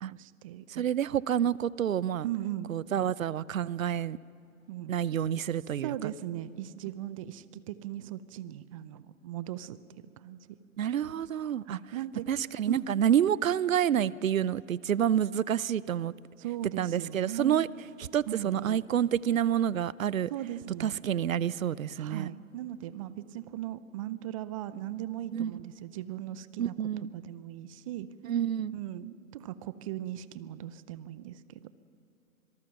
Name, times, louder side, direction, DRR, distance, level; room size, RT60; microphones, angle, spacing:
voice 1, 0.1-0.8 2.2-2.7 4.7-5.0 5.8-9.8 10.2-10.4 11.7-12.3 12.7-12.9 16.4-17.7 18.3-18.8 20.3-21.0 22.0-28.1 28.7-31.7, right 13 dB, 25° right, 16 dB, 0.6 m, -38 dB
voice 2, 0.7-2.3 2.7-4.2 4.9-6.1 10.8-11.8 12.3-16.1 16.7-17.7 18.1-20.3 20.8-22.3 25.3-25.5 26.6-27.1 28.2-28.7, right 10 dB, 75° right, 21 dB, 0.6 m, -28 dB
26.0 x 19.5 x 5.9 m, 2.8 s
figure-of-eight pair, 130°, 40 cm